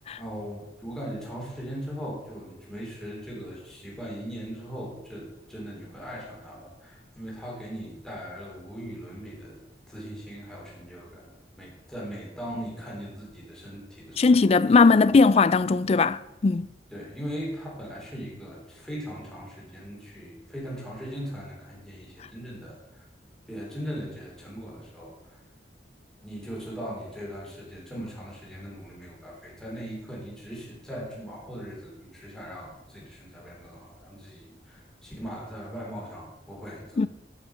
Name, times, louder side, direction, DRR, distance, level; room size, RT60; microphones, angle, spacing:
voice 1, 0.2-11.3 11.6-14.3 16.9-23.1 23.5-25.4 26.2-37.1, equal, 5° left, 3.4 m, -39 dB
voice 2, 14.2-16.7 37.0-37.1, left 4 dB, 35° left, 0.3 m, -19 dB
13.5 x 5.8 x 5.7 m
head